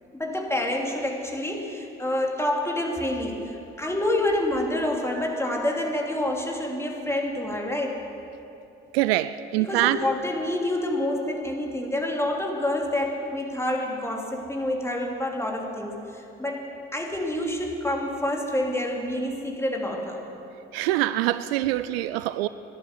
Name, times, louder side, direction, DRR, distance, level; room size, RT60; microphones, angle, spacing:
voice 1, 0.1-8.0 9.6-20.2, left 1 dB, 10° left, 3.2 m, -28 dB
voice 2, 8.9-10.0 20.7-22.5, right 16 dB, 75° right, 0.5 m, -24 dB
21.0 x 11.0 x 6.2 m
figure-of-eight pair, 45°, 30 cm